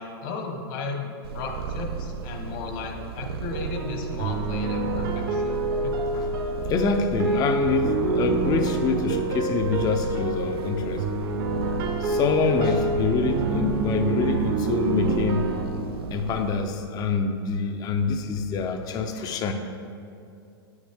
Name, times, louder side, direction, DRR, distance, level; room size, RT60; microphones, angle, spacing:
voice 1, 0.0-6.0, left 4 dB, 60° left, 3 dB, 1.3 m, -35 dB
Purr, 1.2-16.6, right 5 dB, 75° right, 0.5 m, -35 dB
sound 1, 3.5-15.6, right 3 dB, 55° right, 1.0 m, -27 dB
voice 2, 6.7-11.0 12.0-15.5 16.1-19.5, left 5 dB, 30° left, 6 dB, 0.6 m, -26 dB
8.5 x 6.3 x 3.6 m, 2.5 s
hypercardioid pair, 110°, 13 cm